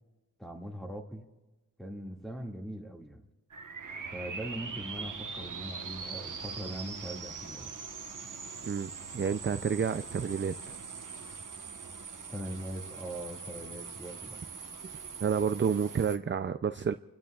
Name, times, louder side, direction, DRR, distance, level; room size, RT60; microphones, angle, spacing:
voice 1, 0.4-1.3 1.8-3.2 4.1-7.8 12.3-14.4, right 1 dB, ahead, 1 dB, 2.1 m, -41 dB
sound 1, 3.5-16.2, right 5 dB, 60° right, 1.2 m, -42 dB
voice 2, 8.7-10.5 15.2-16.9, right 6 dB, 35° right, 10 dB, 0.5 m, -30 dB
28.5 x 16.5 x 2.4 m, 1.1 s
wide cardioid pair, 80°, 35 cm